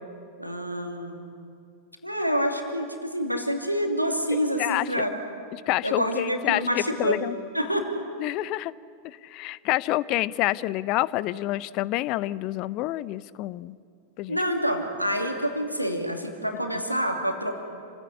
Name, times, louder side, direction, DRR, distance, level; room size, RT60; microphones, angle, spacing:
voice 1, 0.4-1.2 2.0-5.1 5.8-7.3 7.5-7.9 14.3-17.6, equal, 90° right, 3 dB, 2.7 m, -27 dB
voice 2, 4.3-5.0 5.7-7.4 8.2-8.7 9.0-13.7 14.2-14.4, left 17 dB, 40° left, 20 dB, 0.6 m, -28 dB
29.0 x 16.5 x 9.8 m, 2.4 s
figure-of-eight pair, 90°, 0 cm